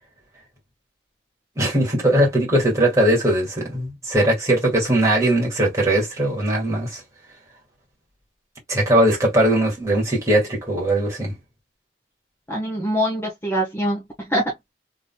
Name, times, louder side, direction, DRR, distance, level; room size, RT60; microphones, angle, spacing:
voice 1, 1.6-7.0 8.7-11.3, right 1 dB, 15° right, 2.1 m, -20 dB
voice 2, 12.5-14.5, equal, 15° left, 1.1 m, -24 dB
3.9 x 3.3 x 2.2 m
head